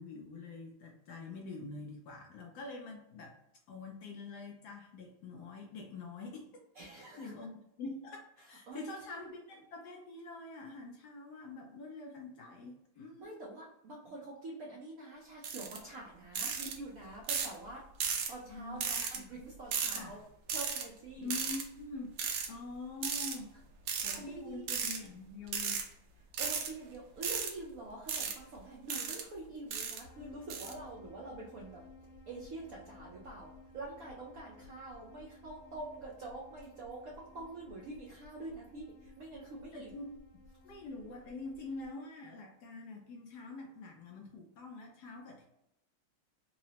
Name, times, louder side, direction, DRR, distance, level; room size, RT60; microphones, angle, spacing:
voice 1, 0.0-3.3 3.7-6.5 7.2-7.5 7.8-13.4 18.5-19.3 19.9-20.2 21.2-22.1 22.5-23.6 24.0-25.9 39.7-40.2 40.6-45.4, left 3 dB, 75° left, 1 dB, 0.9 m, -45 dB
voice 2, 6.8-7.3 8.7-8.9 13.2-17.8 18.3-20.2 20.5-21.3 23.9-24.7 26.4-31.8 32.3-39.9, right 2 dB, 75° right, -4 dB, 0.8 m, -46 dB
sound 1, 15.4-15.8 16.4-16.7 17.3-17.6 18.0-18.3 18.8-19.2 19.7-20.0 20.5-20.8 21.3-21.6 22.2-22.5 23.0-23.4 23.9-24.2 24.7-25.0 25.5-25.8 26.3-26.7 27.2-27.5 28.1-28.3 28.9-29.2 29.7-30.0 30.5-30.7, right 6 dB, 90° right, 1.5 m, -35 dB
sound 2, 30.0-41.9, left 2 dB, 55° left, 1.6 m, -56 dB
3.8 x 2.1 x 2.8 m, 0.81 s
omnidirectional pair, 2.2 m